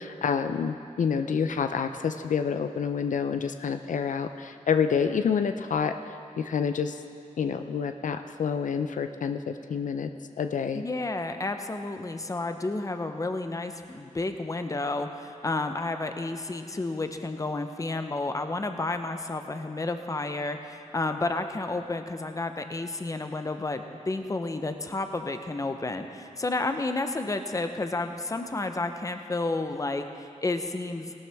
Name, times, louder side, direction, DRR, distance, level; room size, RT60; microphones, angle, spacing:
voice 1, 0.0-7.0 7.4-10.1 10.4-10.8, left 6 dB, 80° left, 8 dB, 0.5 m, -28 dB
voice 2, 10.7-31.1, left 2 dB, 25° left, 7 dB, 0.8 m, -31 dB
17.5 x 12.0 x 3.5 m, 2.5 s
wide cardioid pair, 95°, 13 cm